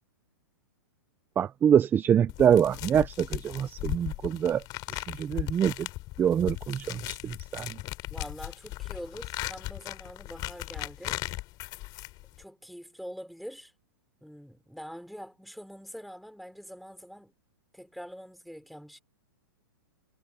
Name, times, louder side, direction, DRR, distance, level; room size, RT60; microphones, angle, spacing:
voice 1, 1.4-4.6 4.9-5.9 6.2-7.8, right 8 dB, 15° right, 0.7 m, -25 dB
sound 1, 2.3-12.4, left 19 dB, 35° left, 4.6 m, -37 dB
voice 2, 8.1-11.2 12.4-13.7 14.2-17.3 17.7-19.0, equal, ahead, 3.9 m, -44 dB
hypercardioid pair, 140°, 12 cm